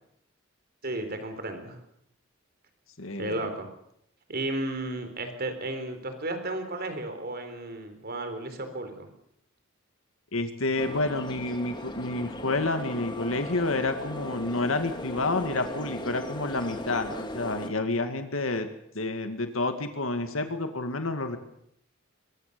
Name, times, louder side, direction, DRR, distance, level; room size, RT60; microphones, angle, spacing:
voice 1, 0.8-1.8 3.2-3.7 4.3-9.1, right 2 dB, 50° right, 8 dB, 4.0 m, -33 dB
voice 2, 3.0-3.5 10.3-18.7 18.9-21.4, left 2 dB, 80° left, 7 dB, 2.2 m, -29 dB
sound 1, 10.8-17.7, left 1 dB, 20° left, 2.3 m, -38 dB
22.5 x 22.0 x 6.9 m, 0.75 s
head